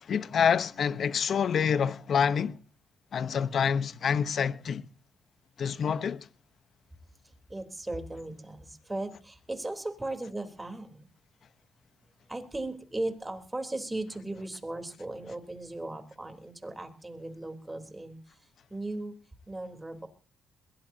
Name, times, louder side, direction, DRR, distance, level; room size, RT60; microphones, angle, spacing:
voice 1, 0.0-2.6 3.1-4.9 5.6-6.3, left 7 dB, 55° left, 0.9 m, -27 dB
voice 2, 7.5-11.0 12.3-18.2 18.7-19.1 19.5-20.1, right 2 dB, 15° right, 3.6 m, -37 dB
22.0 x 17.5 x 2.8 m
cardioid pair, 90°, 0 cm